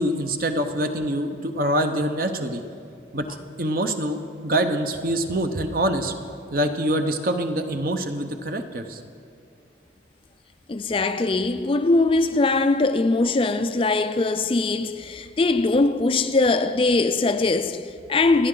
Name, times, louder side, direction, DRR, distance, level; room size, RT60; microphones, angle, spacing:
voice 1, 0.0-2.6 3.1-3.3 3.6-6.1 6.5-9.0, right 1 dB, 50° right, 0.9 m, -25 dB
voice 2, 10.7-18.5, left 3 dB, 30° left, 0.4 m, -21 dB
27.0 x 9.9 x 3.9 m
head